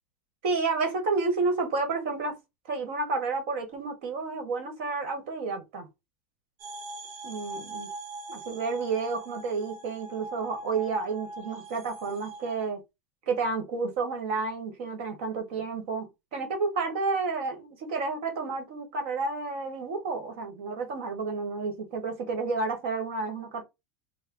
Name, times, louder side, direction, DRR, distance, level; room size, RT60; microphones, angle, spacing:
voice 1, 0.4-2.4 2.7-5.9 7.2-7.9 8.3-12.8 13.3-23.6, right 4 dB, 70° right, 1.4 m, -30 dB
sound 1, 6.6-12.7, right 2 dB, 45° right, 1.0 m, -41 dB
4.3 x 2.2 x 3.6 m
supercardioid pair, 155°, 7 cm